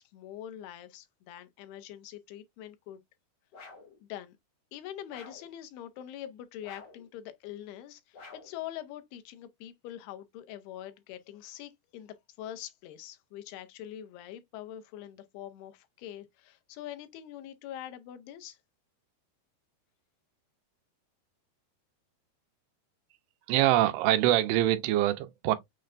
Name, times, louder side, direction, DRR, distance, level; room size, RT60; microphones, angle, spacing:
voice 1, 0.0-3.0 4.0-4.4 4.7-18.6, left 11 dB, 85° left, 2.7 m, -44 dB
sound 1, 3.5-4.0 5.1-5.5 6.6-7.1 8.1-8.6, left 3 dB, 40° left, 1.6 m, -50 dB
voice 2, 23.5-25.6, right 14 dB, 90° right, 2.6 m, -24 dB
6.5 x 3.2 x 2.4 m
omnidirectional pair, 4.5 m